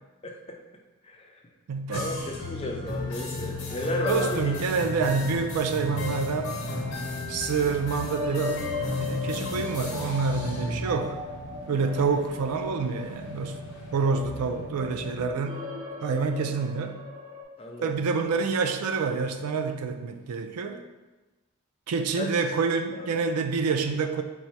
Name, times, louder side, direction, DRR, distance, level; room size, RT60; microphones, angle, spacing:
voice 1, 0.2-0.6 1.0-1.3 2.0-4.5 11.7-12.0 17.6-17.9 22.2-22.3 22.9-23.1, left 1 dB, 25° left, 1 dB, 0.4 m, -33 dB
voice 2, 1.7-2.1 4.1-6.5 7.3-8.7 9.0-11.2 11.7-13.6 13.9-15.6 16.0-17.0 17.8-20.8 21.9-24.2, right 5 dB, 90° right, 7 dB, 0.4 m, -27 dB
sound 1, 1.9-15.3, left 2 dB, 60° left, 0.7 m, -35 dB
sound 2, 4.2-17.4, left 3 dB, 30° right, 0.9 m, -40 dB
4.0 x 2.1 x 4.5 m, 1.2 s
head